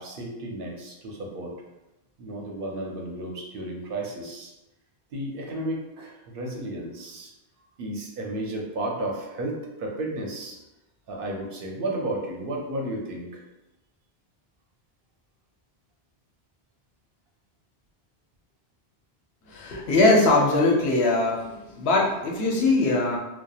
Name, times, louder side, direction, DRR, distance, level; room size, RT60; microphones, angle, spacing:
voice 1, 0.0-1.5 2.2-4.5 5.1-7.3 7.8-10.6 11.1-13.4, right 1 dB, 65° right, -1 dB, 0.7 m, -33 dB
voice 2, 19.5-23.2, left 2 dB, 90° left, -2 dB, 0.9 m, -21 dB
2.8 x 2.1 x 2.3 m, 0.97 s
omnidirectional pair, 1.0 m